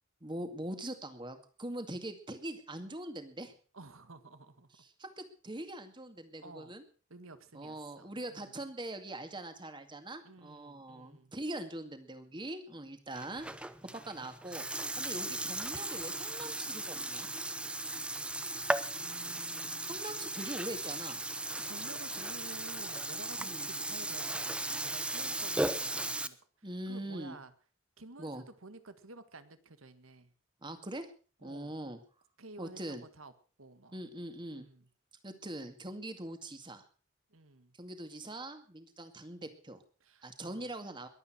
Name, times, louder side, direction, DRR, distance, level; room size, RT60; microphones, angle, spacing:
voice 1, 0.2-3.5 4.8-6.8 7.5-17.3 19.8-21.2 23.4-23.7 26.6-27.4 28.2-28.4 30.6-31.1 31.4-32.0 32.6-33.0 33.9-34.7 35.2-36.8 37.8-39.8 40.2-41.1, right 1 dB, 25° right, 8 dB, 2.1 m, -42 dB
voice 2, 3.7-4.7 6.4-6.7 7.1-8.5 10.2-11.3 19.0-20.0 21.6-27.5 28.0-30.3 31.4-31.8 32.4-33.3 33.6-34.0 34.5-34.9 37.3-37.7 40.0-40.7, right 2 dB, 75° right, 11 dB, 1.7 m, -52 dB
Burping eructation, 13.1-26.3, right 2 dB, 5° right, 0.7 m, -37 dB
22.0 x 8.7 x 6.1 m, 0.40 s
head